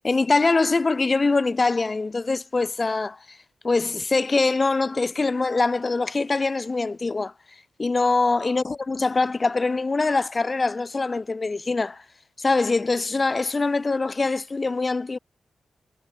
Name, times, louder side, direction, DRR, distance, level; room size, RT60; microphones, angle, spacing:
voice 1, 0.0-3.4 3.6-7.3 7.8-12.0 12.4-15.2, left 3 dB, 25° left, 0.8 m, -23 dB
wide cardioid pair, 150°, 0 cm